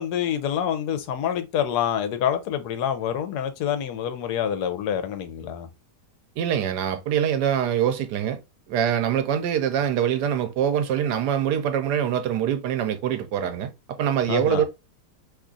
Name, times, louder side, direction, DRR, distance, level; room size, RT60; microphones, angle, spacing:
voice 1, 0.0-5.7 14.3-14.7, left 9 dB, 75° left, 1.2 m, -27 dB
voice 2, 6.4-8.4 8.7-13.7 14.0-14.7, right 9 dB, 85° right, 1.2 m, -24 dB
3.0 x 2.4 x 3.7 m
omnidirectional pair, 1.8 m